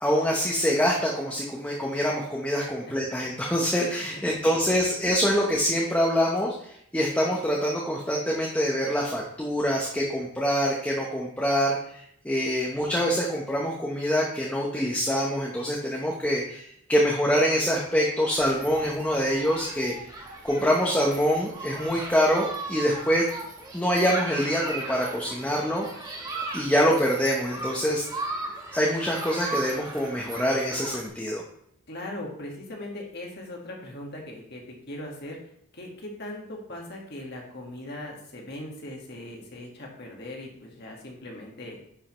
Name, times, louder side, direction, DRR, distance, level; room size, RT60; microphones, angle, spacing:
voice 1, 0.0-6.5 6.9-11.8 12.2-16.6 16.9-19.9 20.4-23.2 23.7-25.9 26.5-28.0 28.7-31.4, equal, 5° left, -3 dB, 0.9 m, -25 dB
voice 2, 2.6-2.9 31.9-35.4 35.7-41.8, left 1 dB, 45° left, -1 dB, 1.8 m, -39 dB
Human group actions, 18.4-31.1, right 2 dB, 20° right, 1.2 m, -37 dB
10.0 x 5.6 x 3.1 m, 0.70 s
head